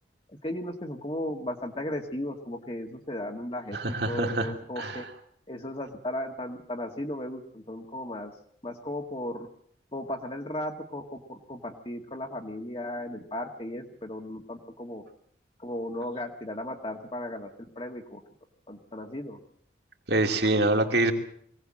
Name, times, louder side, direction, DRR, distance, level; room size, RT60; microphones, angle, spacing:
voice 1, 0.4-3.8 4.1-5.0 5.5-8.3 8.6-9.5 9.9-15.0 15.6-17.5 17.8-18.2 18.7-19.4, left 1 dB, 30° left, 2 dB, 1.7 m, -35 dB
voice 2, 3.7-5.1 20.1-21.1, right 2 dB, 55° right, 4 dB, 2.8 m, -26 dB
23.0 x 18.0 x 7.6 m, 0.63 s
head